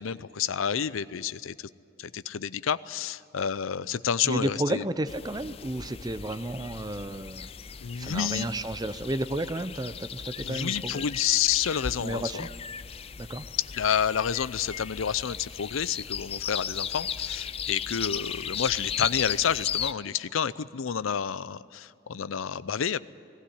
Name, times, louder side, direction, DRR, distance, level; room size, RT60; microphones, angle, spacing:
voice 1, 0.0-1.7 2.0-4.8 7.8-8.5 10.4-12.5 13.7-23.0, left 8 dB, 85° left, 17 dB, 0.5 m, -29 dB
voice 2, 4.2-7.5 8.0-11.0 12.0-12.5 13.2-13.4, right 1 dB, 20° right, 13 dB, 0.6 m, -32 dB
sound 1, 5.1-19.9, left 8 dB, 30° left, 0.4 m, -36 dB
18.0 x 16.0 x 9.9 m, 2.6 s
head